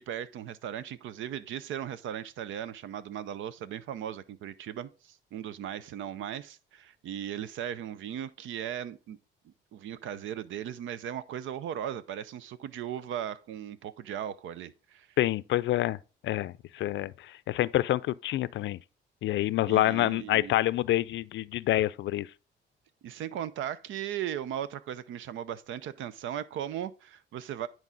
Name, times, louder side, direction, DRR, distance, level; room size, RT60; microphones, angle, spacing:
voice 1, 0.0-9.2 9.4-15.1 19.7-20.5 23.0-27.7, right 10 dB, 80° right, 0.6 m, -37 dB
voice 2, 15.2-16.0 16.2-17.1 17.5-18.8 19.2-22.3, left 14 dB, 70° left, 0.4 m, -27 dB
9.8 x 4.6 x 3.9 m
cardioid pair, 90°, 20 cm